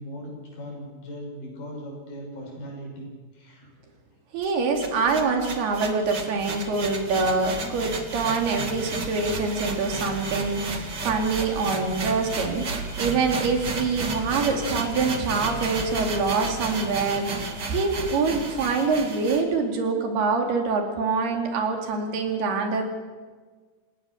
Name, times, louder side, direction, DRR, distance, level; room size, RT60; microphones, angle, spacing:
voice 1, 0.0-3.7, equal, 60° left, -1 dB, 8.0 m, -39 dB
voice 2, 4.3-22.8, right 4 dB, 80° right, 4 dB, 4.7 m, -25 dB
sound 1, 4.4-19.4, right 3 dB, 35° right, 2.1 m, -33 dB
27.5 x 17.5 x 7.2 m, 1.4 s
omnidirectional pair, 4.4 m